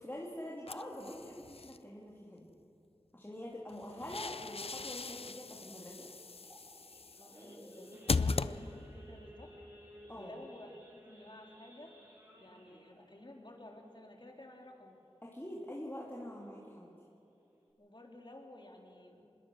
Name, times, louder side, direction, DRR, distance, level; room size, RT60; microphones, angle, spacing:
voice 1, 0.0-2.5 3.1-6.1 10.1-10.3 15.2-16.9, left 1 dB, 20° left, -4 dB, 2.8 m, -45 dB
sound 1, 0.7-1.8 3.7-9.1, left 4 dB, 60° left, 0.5 m, -38 dB
Idling / Accelerating revving vroom / Sawing, 3.8-14.9 15.3-15.5 15.7-15.8 16.3-16.6 17.1-17.2 17.4-17.7, equal, 25° right, 7.1 m, -57 dB
voice 2, 7.2-9.5 10.1-11.9 12.4-15.0 17.8-19.3, left 1 dB, 45° left, 1 dB, 3.4 m, -53 dB
25.5 x 21.0 x 6.4 m, 2.7 s
wide cardioid pair, 45°, 11 cm